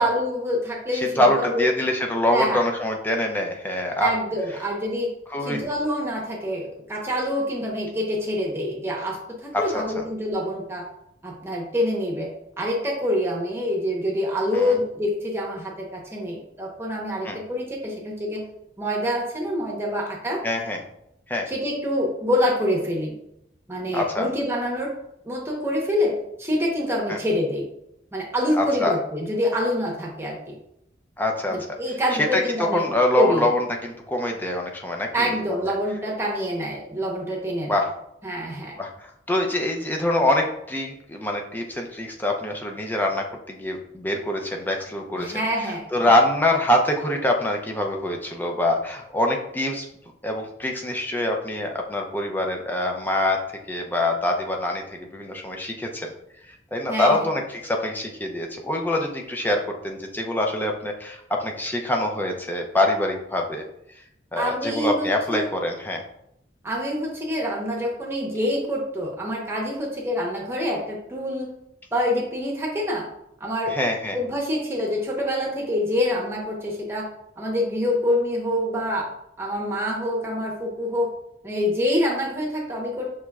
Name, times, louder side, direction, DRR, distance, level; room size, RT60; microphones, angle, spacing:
voice 1, 0.0-1.7 2.3-2.6 4.0-5.1 5.4-10.8 11.2-12.3 12.6-18.4 18.8-20.4 21.5-23.1 23.7-24.9 25.2-27.6 28.1-30.4 31.5-32.8 33.1-33.5 35.1-37.8 38.2-38.8 45.2-46.1 56.9-57.3 64.4-65.5 66.6-71.5 71.9-73.1 73.4-73.8 74.1-77.1 77.4-79.1 79.4-81.1 81.4-83.1, left 1 dB, 15° right, -2 dB, 0.8 m, -26 dB
voice 2, 0.9-4.1 5.3-5.6 9.7-9.8 14.5-14.8 17.2-17.4 20.4-20.8 21.3-21.5 23.9-24.3 27.1-27.2 28.5-28.9 31.2-31.7 32.1-35.3 35.6-35.7 37.7-37.9 38.8-45.4 45.9-49.9 50.2-53.4 53.7-56.1 56.7-63.6 64.3-66.0 73.7-74.2, left 1 dB, 10° left, 2 dB, 0.5 m, -24 dB
6.0 x 3.0 x 2.3 m, 0.79 s
head